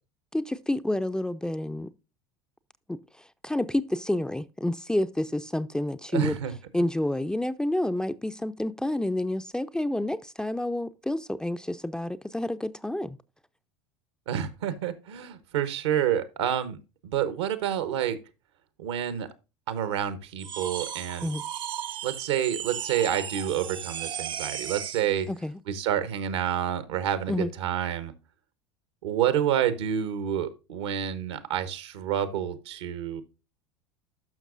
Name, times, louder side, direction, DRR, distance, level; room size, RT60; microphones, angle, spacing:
voice 1, 0.3-1.9 2.9-3.0 3.4-6.4 6.7-13.2 21.2-21.4 25.3-25.6 27.3-27.5, left 1 dB, 5° left, 0.4 m, -29 dB
voice 2, 6.1-6.5 14.3-16.8 17.0-18.2 18.8-19.3 19.7-21.3 22.0-25.3 25.7-28.1 29.0-33.2, right 10 dB, 75° right, 1.1 m, -28 dB
sound 1, 20.4-25.1, right 9 dB, 35° right, 0.6 m, -36 dB
12.0 x 5.9 x 2.5 m
hypercardioid pair, 80°, 15 cm